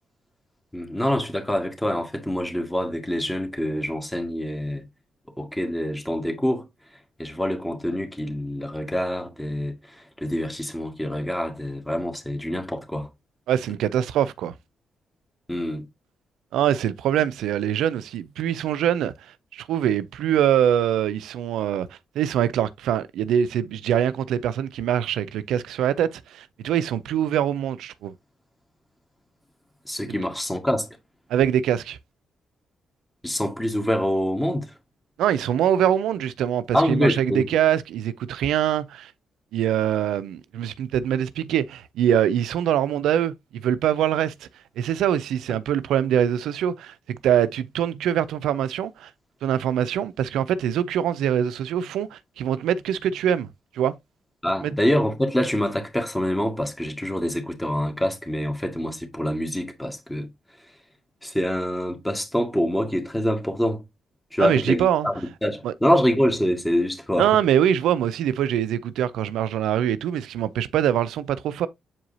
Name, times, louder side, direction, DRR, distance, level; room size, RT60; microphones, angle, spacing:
voice 1, 0.7-4.8 5.4-6.7 7.2-13.1 15.5-15.8 29.8-30.9 33.2-34.7 36.7-37.4 54.4-60.3 61.2-63.8 64.3-67.4, equal, 10° left, 1.8 m, -25 dB
voice 2, 13.5-14.5 16.5-19.1 19.5-21.9 22.2-28.1 31.3-32.0 35.2-39.1 39.5-44.5 44.8-46.9 47.2-49.1 49.4-53.5 53.7-53.9 54.6-54.8 64.4-65.1 65.6-65.7 67.2-71.7, right 10 dB, 70° right, 0.4 m, -23 dB
7.3 x 4.7 x 2.7 m
hypercardioid pair, 40°, 0 cm